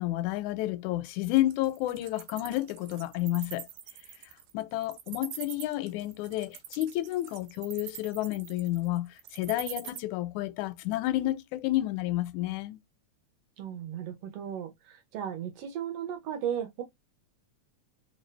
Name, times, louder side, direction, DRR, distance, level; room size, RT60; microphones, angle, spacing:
voice 1, 0.0-3.7 4.5-12.8, left 15 dB, 85° left, 1.9 m, -30 dB
Wild animals, 1.4-10.0, right 11 dB, 90° right, 2.0 m, -43 dB
voice 2, 13.6-16.8, right 9 dB, 65° right, 1.8 m, -35 dB
4.4 x 2.6 x 3.3 m
omnidirectional pair, 3.3 m